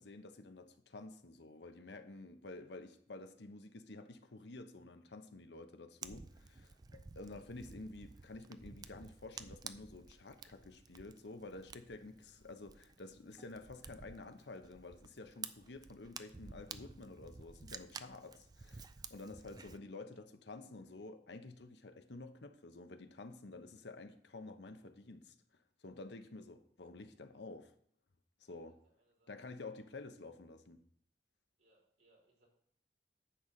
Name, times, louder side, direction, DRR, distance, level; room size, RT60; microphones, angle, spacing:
voice 1, 0.0-25.3 25.8-27.7 28.4-28.8 29.3-30.8, left 2 dB, 75° left, 8 dB, 0.9 m, -51 dB
Fire, 6.0-19.8, right 5 dB, 25° right, 0.4 m, -52 dB
voice 2, 28.7-29.5 31.6-32.5, right 1 dB, 75° right, -3 dB, 3.7 m, -73 dB
10.0 x 4.0 x 7.4 m, 0.65 s
head